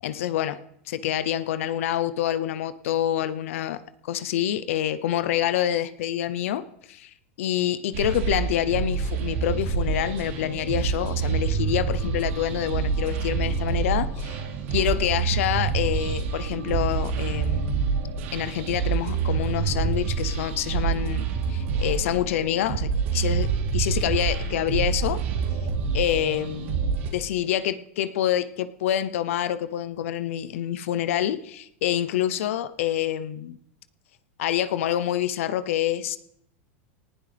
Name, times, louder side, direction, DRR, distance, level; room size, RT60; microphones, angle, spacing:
voice 1, 0.0-0.6 0.9-7.1 7.4-14.4 14.7-17.8 18.3-25.2 25.9-33.6 34.4-36.2, left 11 dB, 75° left, 14 dB, 0.7 m, -27 dB
sound 1, 7.9-27.1, right 6 dB, 70° right, 3.2 m, -27 dB
19.0 x 11.5 x 3.4 m, 0.76 s
supercardioid pair, 135°, 7 cm